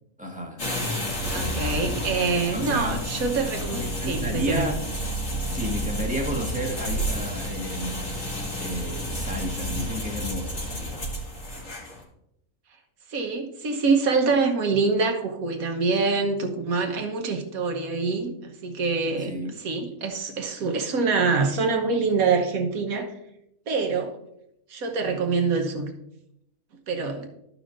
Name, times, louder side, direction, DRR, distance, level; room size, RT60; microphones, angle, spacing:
voice 1, 0.2-0.6 2.5-3.0 3.7-4.8 5.5-11.1 19.2-19.5, equal, 5° right, 0 dB, 1.4 m, -32 dB
sound 1, 0.6-12.0, equal, 65° left, 2.7 m, -30 dB
voice 2, 1.3-4.7 13.1-23.1 23.7-24.2 24.7-25.9 26.9-27.3, right 4 dB, 90° right, 4 dB, 1.6 m, -25 dB
13.5 x 5.6 x 2.6 m, 0.80 s
omnidirectional pair, 1.4 m